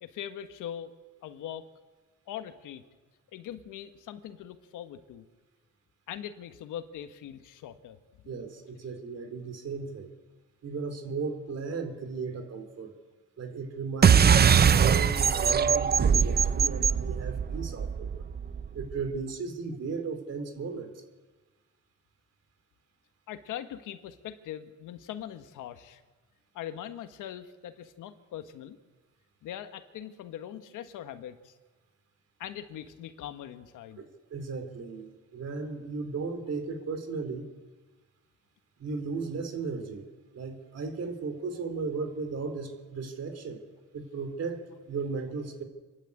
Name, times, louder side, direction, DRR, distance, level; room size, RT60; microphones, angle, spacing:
voice 1, 0.0-0.9 1.2-1.7 2.3-2.8 3.3-5.3 6.1-8.0 23.3-26.0 26.5-28.8 29.4-31.5 32.4-34.0, left 10 dB, 85° left, 9 dB, 1.5 m, -41 dB
voice 2, 8.3-10.1 10.6-12.9 13.4-18.2 18.7-20.9 34.3-37.4 38.8-40.0 40.3-43.6 43.9-45.6, right 4 dB, 55° right, 8 dB, 3.5 m, -35 dB
sound 1, 14.0-18.9, right 7 dB, 35° right, 0.6 m, -22 dB
27.5 x 11.5 x 8.5 m, 1.3 s
cardioid pair, 90°, 30 cm